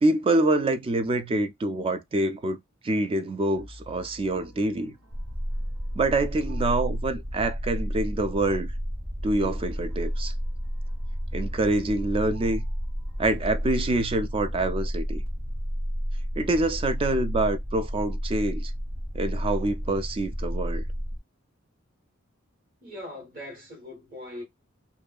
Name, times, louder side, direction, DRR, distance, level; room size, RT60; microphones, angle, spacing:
voice 1, 0.0-2.6 2.8-5.0 6.0-8.7 9.2-10.3 11.3-12.6 13.2-15.2 16.4-18.7 19.1-20.8, right 2 dB, 25° right, 0.3 m, -26 dB
sound 1, 3.6-15.3, equal, 80° right, 1.1 m, -45 dB
sound 2, 5.1-21.2, equal, 5° right, 0.7 m, -31 dB
voice 2, 22.8-24.4, left 1 dB, 45° right, 1.3 m, -40 dB
2.6 x 2.3 x 2.3 m
head